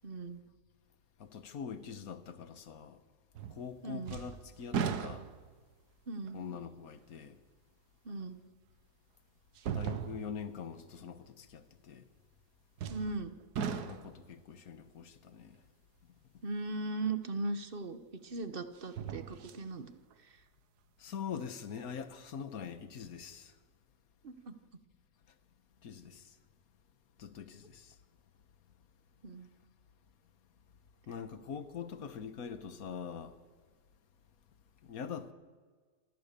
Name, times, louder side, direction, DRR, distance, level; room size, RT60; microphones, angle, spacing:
voice 1, 0.0-0.4 3.8-4.2 6.1-6.4 8.0-8.4 12.9-13.3 16.4-18.0 18.2-19.9 24.2-24.5 29.2-29.5, right 3 dB, 40° right, 1.3 m, -38 dB
voice 2, 1.2-3.0 3.5-5.2 6.3-7.4 9.7-12.1 13.8-15.6 21.0-23.5 25.8-26.3 27.2-28.0 31.1-33.4 34.8-35.3, left 7 dB, 65° left, 1.6 m, -43 dB
sound 1, 3.3-3.7 4.0-5.6 6.3-6.4 8.2-8.3 9.5-10.5 12.8-13.2 13.5-14.3 17.3-17.4 18.8-19.6 20.1-20.2, right 7 dB, 90° right, 1.6 m, -37 dB
26.5 x 16.5 x 6.8 m
omnidirectional pair, 1.7 m